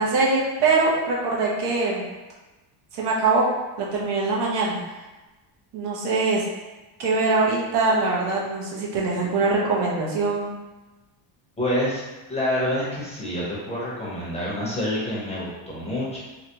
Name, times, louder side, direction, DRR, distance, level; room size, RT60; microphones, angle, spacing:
voice 1, 0.0-2.1 2.9-3.5 3.8-4.8 5.7-6.4 7.0-10.5, right 3 dB, 65° right, -4 dB, 0.9 m, -23 dB
voice 2, 11.6-12.0 12.3-16.2, left 1 dB, 15° left, -7 dB, 0.9 m, -27 dB
3.4 x 2.2 x 2.9 m, 1.1 s
cardioid pair, 120°, 45 cm